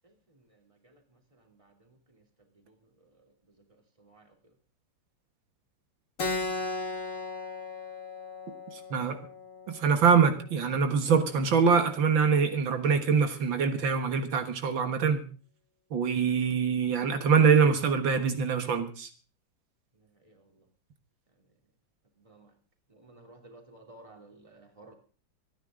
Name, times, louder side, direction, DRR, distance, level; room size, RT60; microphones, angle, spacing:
Keyboard (musical), 6.2-11.3, left 3 dB, 45° left, 1.9 m, -37 dB
voice 1, 9.7-15.2 15.9-19.1, right 6 dB, 80° right, 8 dB, 2.2 m, -24 dB
voice 2, 22.9-24.9, right 2 dB, 15° right, 4 dB, 2.9 m, -53 dB
27.0 x 9.8 x 3.7 m, 0.39 s
omnidirectional pair, 2.1 m